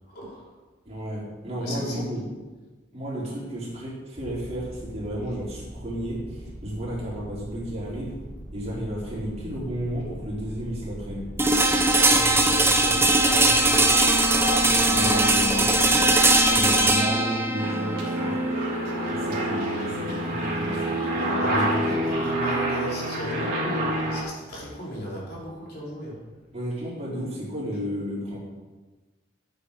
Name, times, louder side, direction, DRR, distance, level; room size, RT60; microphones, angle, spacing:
voice 1, 0.1-0.5 1.6-2.0 11.9-13.9 14.5-16.0 18.8-19.3 21.4-26.2, equal, 60° left, -5 dB, 4.5 m, -35 dB
voice 2, 0.8-2.2 2.9-8.2 8.5-11.3 14.8-18.4 19.2-22.1 26.5-28.4, equal, 35° right, -6 dB, 4.4 m, -32 dB
sound 1, 4.2-16.9, equal, 20° left, 4.1 m, -40 dB
sound 2, 11.4-21.3, right 2 dB, 15° right, 1.0 m, -21 dB
Aircraft, 17.6-24.2, right 1 dB, 55° right, 3.9 m, -27 dB
13.5 x 8.5 x 5.0 m, 1.2 s
head